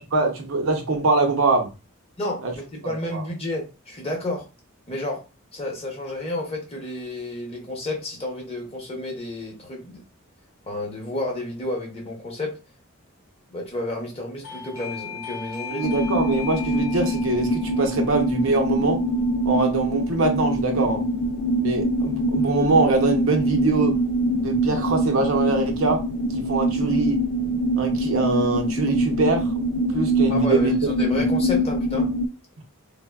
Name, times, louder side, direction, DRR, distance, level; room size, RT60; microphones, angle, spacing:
voice 1, 0.0-1.7 2.4-2.5 3.1-3.2 15.7-19.0 19.4-21.0 21.6-24.0 24.4-26.0 26.4-27.2 27.8-29.5 29.9-30.7 31.1-31.2, right 3 dB, 65° right, 0.6 m, -23 dB
voice 2, 2.2-4.5 4.9-5.2 5.5-10.0 10.7-12.6 13.5-15.9 30.3-32.1, left 1 dB, 25° left, 0.8 m, -31 dB
Doorbell, 14.4-20.9, left 7 dB, 70° left, 0.7 m, -39 dB
sound 1, 15.8-32.3, right 1 dB, 85° left, 0.3 m, -24 dB
3.1 x 2.0 x 2.2 m
head